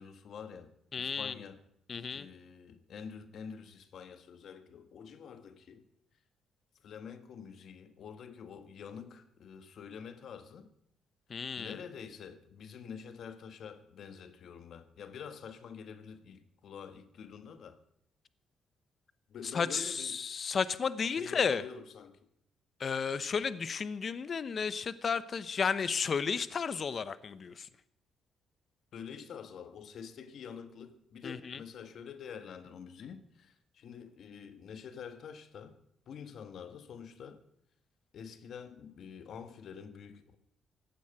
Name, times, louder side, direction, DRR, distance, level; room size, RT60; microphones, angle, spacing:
voice 1, 0.0-1.6 2.1-5.8 6.8-10.7 11.6-17.8 19.3-20.2 21.1-22.2 28.9-35.8 36.1-37.4 38.1-40.4, left 7 dB, 65° left, 1.6 m, -47 dB
voice 2, 0.9-1.3 1.9-2.3 11.3-11.7 19.5-21.6 22.8-27.7 31.2-31.6, left 6 dB, 45° left, 0.9 m, -33 dB
16.0 x 9.3 x 8.9 m
cardioid pair, 90°, 0 cm